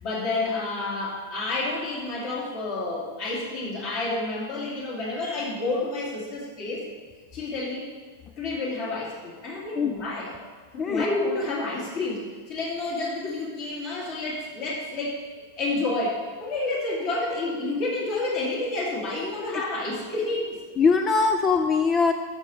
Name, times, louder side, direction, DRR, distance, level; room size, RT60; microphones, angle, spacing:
voice 1, 0.0-6.9 7.3-7.9 8.4-10.3 10.7-15.2 15.6-20.6, left 2 dB, 40° left, -4 dB, 2.7 m, -29 dB
voice 2, 20.8-22.1, left 5 dB, 25° left, 8 dB, 0.4 m, -21 dB
12.0 x 6.7 x 3.3 m, 1.4 s
figure-of-eight pair, 90°, 0 cm